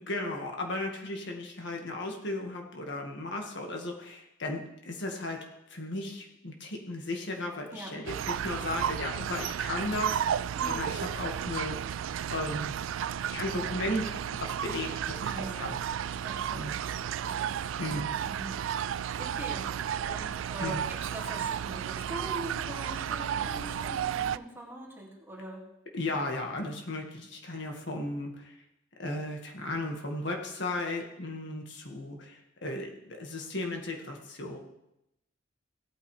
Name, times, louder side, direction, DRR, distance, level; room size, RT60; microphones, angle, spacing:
voice 1, 0.0-5.4 5.7-12.0 12.3-12.7 13.3-15.8 16.5-16.7 17.8-18.1 20.6-20.8 25.9-28.6 29.0-34.6, left 2 dB, 65° left, 2 dB, 1.8 m, -35 dB
sound 1, 8.1-24.4, right 9 dB, 90° right, 0.3 m, -33 dB
voice 2, 10.6-10.9 15.3-15.7 16.1-18.0 18.2-25.7, right 1 dB, 10° right, -3 dB, 2.2 m, -43 dB
17.0 x 8.9 x 3.3 m, 0.85 s
head